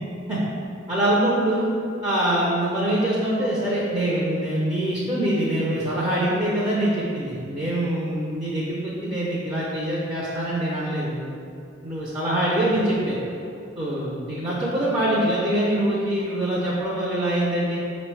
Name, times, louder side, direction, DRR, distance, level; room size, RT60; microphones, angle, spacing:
voice 1, 0.9-1.7 2.0-11.2 11.8-13.2 13.8-17.8, right 1 dB, 20° right, -7 dB, 0.5 m, -24 dB
4.9 x 2.1 x 4.5 m, 2.6 s
head